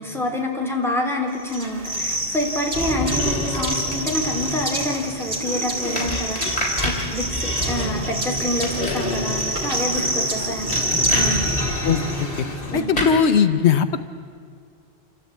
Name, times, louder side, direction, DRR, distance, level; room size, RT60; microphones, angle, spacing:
voice 1, 0.0-10.9 11.1-11.5 12.7-12.9, left 1 dB, ahead, -1 dB, 3.2 m, -27 dB
sound 1, 1.5-12.4, right 1 dB, 55° right, 3.0 m, -27 dB
sound 2, 2.7-12.8, left 2 dB, 55° left, 3.0 m, -29 dB
sound 3, 6.0-7.0 8.4-9.4 10.7-11.3 12.9-13.2, left 1 dB, 35° left, 4.2 m, -27 dB
voice 2, 12.7-14.0, left 7 dB, 80° left, 10 dB, 1.1 m, -18 dB
28.0 x 14.0 x 8.5 m, 2.3 s
omnidirectional pair, 1.1 m